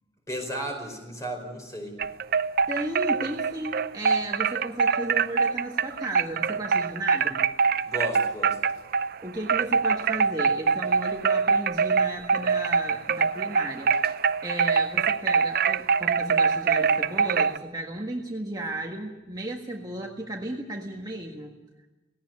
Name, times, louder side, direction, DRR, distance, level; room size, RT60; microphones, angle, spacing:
voice 1, 0.3-2.0 7.9-8.6, right 1 dB, 15° left, 3 dB, 4.9 m, -34 dB
sound 1, 2.0-9.1 9.5-17.6, right 5 dB, 55° right, 0.6 m, -24 dB
voice 2, 2.7-7.5 9.2-13.9 14.4-21.5, right 1 dB, 20° right, 0 dB, 1.6 m, -34 dB
17.5 x 17.5 x 9.7 m, 1.1 s
head